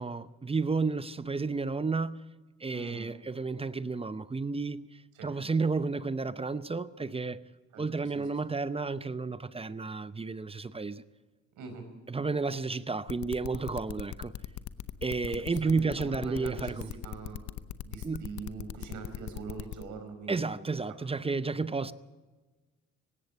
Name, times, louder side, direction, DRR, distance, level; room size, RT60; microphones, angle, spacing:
voice 1, 0.0-2.2 2.6-4.9 5.2-7.4 7.8-11.0 12.1-14.3 15.0-16.9 18.0-18.2 20.3-21.9, right 4 dB, 20° right, 0.7 m, -32 dB
voice 2, 2.7-3.1 5.1-5.3 7.7-7.8 8.1-8.2 11.6-11.8 15.3-17.4 17.8-20.6, right 4 dB, 80° right, 4.8 m, -43 dB
sound 1, 13.1-19.8, left 12 dB, 70° left, 0.9 m, -39 dB
18.5 x 16.5 x 8.7 m
cardioid pair, 90°, 30 cm